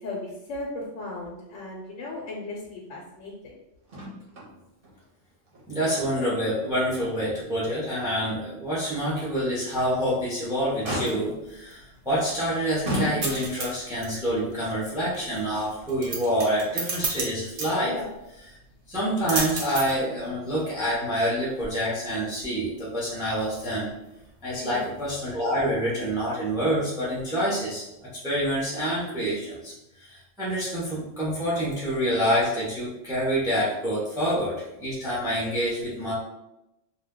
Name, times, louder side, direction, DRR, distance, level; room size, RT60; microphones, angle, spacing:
voice 1, 0.0-3.6 17.8-18.1 24.6-24.9, left 2 dB, 85° left, -2 dB, 0.9 m, -36 dB
Motor vehicle (road), 3.9-4.5 4.8-4.9 5.5-6.4 6.8-7.0 7.5-7.6 9.8-10.3 10.8-11.5 12.3-12.4 12.9-13.7 14.7-14.8, equal, 50° right, 0.9 m, -33 dB
voice 2, 5.7-17.9 18.9-23.9 24.4-29.7 30.0-36.1, equal, 5° right, -6 dB, 0.6 m, -27 dB
sound 1, 10.8-25.5, right 3 dB, 80° right, 1.0 m, -37 dB
2.6 x 2.2 x 3.6 m, 0.92 s
omnidirectional pair, 1.3 m